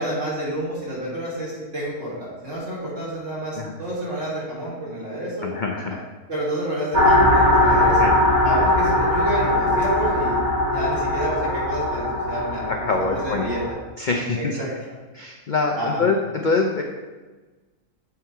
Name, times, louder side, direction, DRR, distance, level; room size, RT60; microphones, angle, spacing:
voice 1, 0.0-5.5 6.3-8.1 8.4-10.5 10.7-13.6 14.3-14.7 15.7-16.1, right 1 dB, 55° right, -8 dB, 3.1 m, -29 dB
voice 2, 5.4-6.0 8.0-8.1 12.7-13.4 14.0-14.6 15.1-16.8, left 3 dB, 65° left, 1 dB, 0.4 m, -24 dB
sound 1, 6.9-13.7, left 1 dB, 20° right, 1.3 m, -20 dB
7.5 x 4.7 x 4.5 m, 1.2 s
omnidirectional pair, 1.6 m